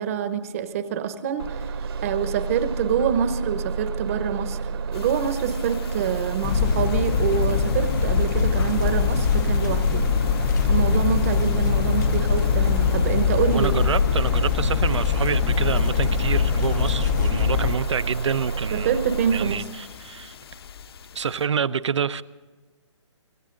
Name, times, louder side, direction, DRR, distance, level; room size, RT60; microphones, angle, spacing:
voice 1, 0.0-1.7 2.0-4.6 4.9-10.0 10.6-13.7 18.7-19.6, right 8 dB, 30° right, 1.0 m, -26 dB
Bus, 1.4-19.6, right 5 dB, 50° right, 1.1 m, -30 dB
sound 1, 4.9-21.5, left 6 dB, 50° left, 1.2 m, -40 dB
sound 2, 6.4-17.7, left 8 dB, 35° left, 0.7 m, -22 dB
voice 2, 13.5-19.0 19.3-20.3 21.1-22.2, right 7 dB, 70° right, 0.7 m, -27 dB
25.5 x 14.5 x 3.8 m
hypercardioid pair, 160°, 16 cm